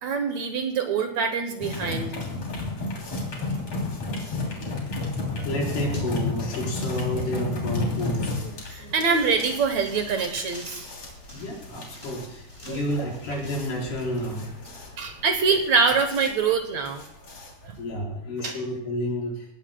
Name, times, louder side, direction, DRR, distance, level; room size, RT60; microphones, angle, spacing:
voice 1, 0.0-2.1 5.3-5.4 8.4-10.8 12.7-13.1 15.0-17.0 17.6-17.8 18.4-18.6, right 5 dB, 70° right, 6 dB, 1.7 m, -25 dB
sound 1, 1.6-17.9, left 3 dB, 40° left, 4.1 m, -32 dB
sound 2, 4.2-15.0, left 1 dB, 15° left, 7.0 m, -49 dB
voice 2, 5.4-8.4 11.3-15.3 17.8-19.5, equal, 70° left, -3 dB, 6.5 m, -31 dB
22.5 x 18.0 x 2.3 m, 0.76 s
omnidirectional pair, 4.7 m